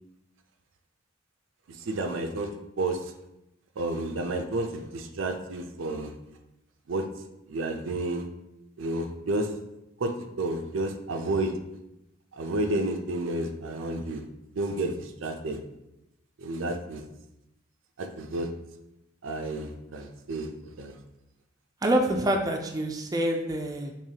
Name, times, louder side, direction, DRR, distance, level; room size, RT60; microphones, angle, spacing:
voice 1, 1.9-2.5 2.8-3.0 3.8-6.1 6.9-7.0 7.5-8.3 8.8-9.5 10.0-11.5 12.4-14.2 14.5-15.6 16.4-17.0 18.0-18.5 19.2-20.5 20.8-20.9, right 2 dB, 85° right, 5 dB, 0.5 m, -30 dB
voice 2, 21.8-23.9, right 1 dB, 20° right, 2 dB, 0.4 m, -26 dB
4.8 x 3.0 x 2.8 m, 0.89 s
head